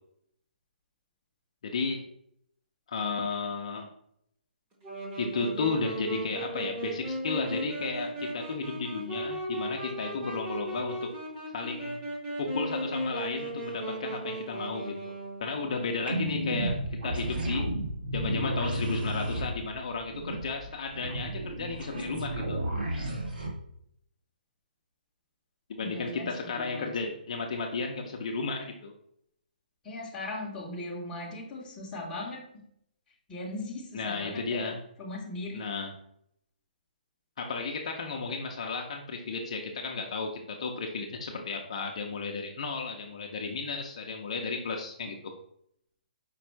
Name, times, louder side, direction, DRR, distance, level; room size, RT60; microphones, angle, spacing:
voice 1, 1.6-2.1 2.9-3.9 5.2-11.1 11.5-12.0 12.4-15.1 15.4-17.7 18.1-22.6 25.7-28.9 33.9-34.8 35.5-36.0 37.4-45.4, left 4 dB, 40° left, 2 dB, 0.5 m, -33 dB
Wind instrument woodwind instrument, 4.8-15.7, right 1 dB, 15° right, 0.9 m, -36 dB
sound 1, 16.1-23.5, right 1 dB, 75° right, 1.7 m, -32 dB
voice 2, 25.8-26.9 29.8-32.6 33.3-34.6 35.0-35.6, left 2 dB, 10° left, -4 dB, 0.8 m, -38 dB
5.2 x 2.3 x 4.4 m, 0.71 s
hypercardioid pair, 175°, 5 cm